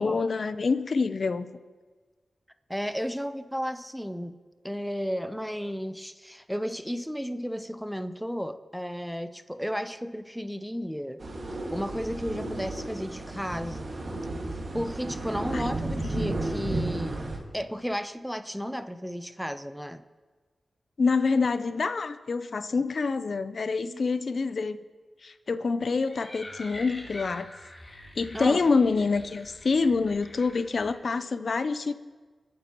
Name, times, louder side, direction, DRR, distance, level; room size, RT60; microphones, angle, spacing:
voice 1, 0.0-1.6 15.5-15.7 16.1-16.3 16.6-16.7 21.0-24.8 25.2-27.5 28.2-31.9, left 4 dB, 65° left, 12 dB, 0.6 m, -26 dB
voice 2, 2.7-4.4 4.6-11.2 11.7-13.9 14.7-17.2 17.5-20.0 23.8-24.0 28.3-28.6, equal, ahead, 10 dB, 0.7 m, -33 dB
sound 1, 11.2-17.4, right 2 dB, 60° right, 2.0 m, -33 dB
sound 2, 25.8-31.0, left 1 dB, 40° left, 3.4 m, -45 dB
27.5 x 9.4 x 3.1 m, 1.4 s
cardioid pair, 55°, 0 cm